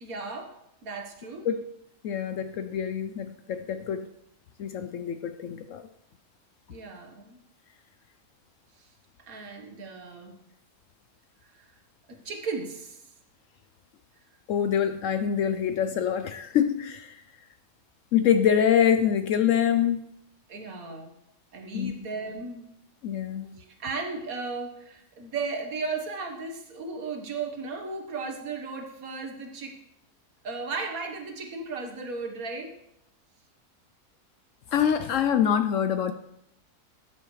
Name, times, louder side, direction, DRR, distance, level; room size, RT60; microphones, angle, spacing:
voice 1, 0.0-0.5 0.8-1.5 6.7-7.4 9.3-10.4 11.4-11.7 12.1-13.0 20.5-21.1 21.5-22.7 23.5-29.8 30.4-32.7, right 4 dB, 65° right, 4 dB, 1.7 m, -35 dB
voice 2, 2.0-4.1 4.6-5.8 14.5-17.2 18.1-20.1 21.7-22.1 23.0-23.6 34.7-36.1, left 8 dB, 70° left, 9 dB, 0.8 m, -25 dB
12.5 x 7.9 x 3.2 m, 0.80 s
omnidirectional pair, 1.6 m